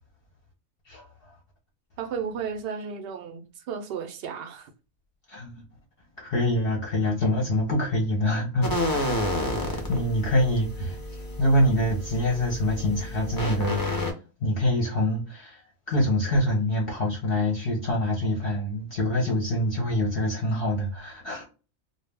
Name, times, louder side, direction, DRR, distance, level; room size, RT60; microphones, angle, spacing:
voice 1, 0.9-1.3 5.3-5.6 6.2-8.7 8.9-14.0 14.4-21.4, left 1 dB, 55° left, 0.7 m, -26 dB
voice 2, 2.0-4.7, right 6 dB, 65° right, 0.6 m, -34 dB
sound 1, 8.6-14.1, left 1 dB, 30° left, 0.3 m, -30 dB
2.2 x 2.0 x 3.2 m
omnidirectional pair, 1.4 m